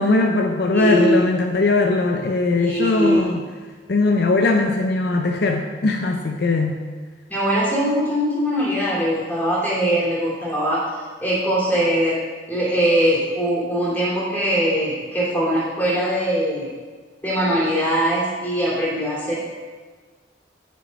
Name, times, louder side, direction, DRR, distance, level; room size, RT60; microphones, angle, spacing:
voice 1, 0.0-3.4 3.9-6.8, left 3 dB, 60° left, 3 dB, 0.6 m, -20 dB
voice 2, 0.7-1.2 2.5-3.3 7.3-10.8 11.2-12.2 12.5-16.7 17.2-19.4, equal, 10° left, -7 dB, 2.8 m, -21 dB
8.8 x 5.4 x 5.2 m, 1.5 s
head